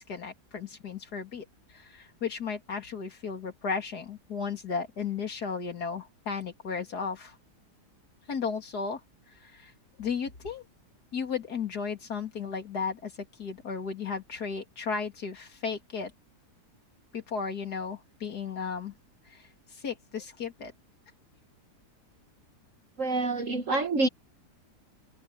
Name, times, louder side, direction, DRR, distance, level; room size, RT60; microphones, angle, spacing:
voice 1, 0.0-1.4 1.7-7.4 8.3-9.0 9.4-9.7 10.0-10.6 11.1-13.1 13.4-16.1 17.1-18.9 19.3-19.4 19.7-20.7, left 5 dB, 75° left, 3.1 m, -34 dB
voice 2, 23.0-24.1, right 2 dB, 55° right, 1.6 m, -27 dB
omnidirectional pair, 1.7 m